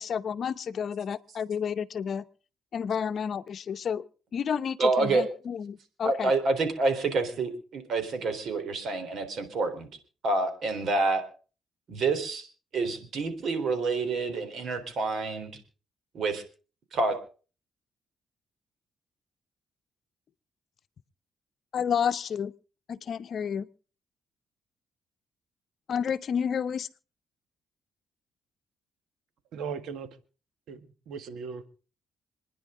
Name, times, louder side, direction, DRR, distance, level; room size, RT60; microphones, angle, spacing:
voice 1, 0.0-2.3 2.7-6.3 21.7-22.5 22.9-23.7 25.9-26.9, left 7 dB, 55° left, 0.8 m, -30 dB
voice 2, 4.8-5.3 6.0-9.9 10.2-11.2 11.9-12.5 12.7-15.5 16.1-16.4 16.9-17.2, right 3 dB, 65° right, 3.8 m, -27 dB
voice 3, 29.5-30.2 30.7-31.7, right 6 dB, 80° right, 1.6 m, -38 dB
27.5 x 10.0 x 3.8 m
cardioid pair, 90°, 0 cm